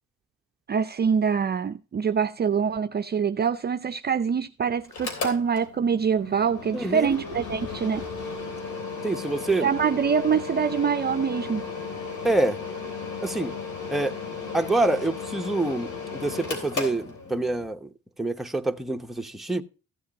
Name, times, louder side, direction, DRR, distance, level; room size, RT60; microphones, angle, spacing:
voice 1, 0.7-8.0 9.6-11.6, right 6 dB, 35° right, 0.5 m, -25 dB
Mechanical fan, 4.8-17.7, left 5 dB, 80° left, 3.3 m, -35 dB
voice 2, 6.7-7.2 9.0-9.7 12.2-12.6 13.2-13.6 13.9-14.2 14.5-17.9 18.2-19.6, right 2 dB, ahead, 0.9 m, -26 dB
15.0 x 7.9 x 2.9 m
cardioid pair, 90°, 30 cm